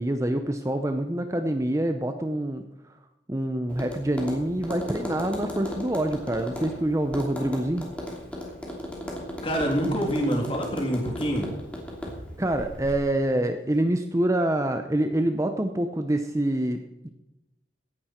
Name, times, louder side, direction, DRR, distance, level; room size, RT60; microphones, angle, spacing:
voice 1, 0.0-2.9 3.3-7.9 12.4-17.1, right 1 dB, 15° right, 7 dB, 0.7 m, -26 dB
Tap, 3.7-13.0, equal, 5° left, 2.8 m, -36 dB
voice 2, 9.4-11.5, equal, 30° left, 1 dB, 2.9 m, -26 dB
16.5 x 10.5 x 4.4 m, 0.94 s
head